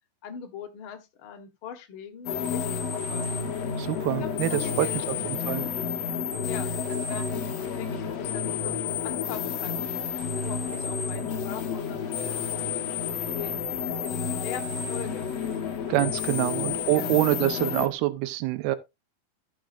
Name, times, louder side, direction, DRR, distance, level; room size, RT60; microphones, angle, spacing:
voice 1, 0.2-3.3 4.2-5.7 6.4-7.3 7.8-9.9 10.3-12.5 13.4-15.4 16.9-17.1, left 8 dB, 50° left, 1.6 m, -41 dB
sound 1, 2.3-17.9, left 6 dB, 70° left, 1.6 m, -30 dB
voice 2, 3.8-4.9 5.2-5.6 15.9-18.8, right 16 dB, 85° right, 2.7 m, -26 dB
15.0 x 6.3 x 2.5 m
omnidirectional pair, 4.4 m